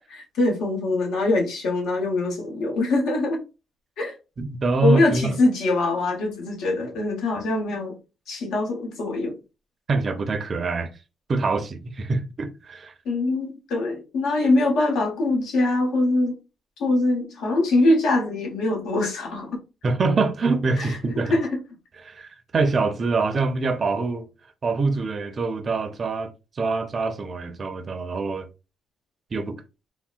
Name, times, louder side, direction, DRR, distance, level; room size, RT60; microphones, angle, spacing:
voice 1, 0.1-3.4 4.0-4.1 4.8-8.0 8.3-9.4 13.0-16.3 16.8-19.6 20.8-21.0 21.3-21.6, left 2 dB, 80° left, 1.0 m, -23 dB
voice 2, 4.4-5.4 9.9-10.9 11.3-12.9 19.8-21.4 22.0-24.3 24.6-28.5 29.3-29.6, right 3 dB, 40° right, 0.4 m, -25 dB
3.7 x 2.0 x 2.4 m
cardioid pair, 90°, 0 cm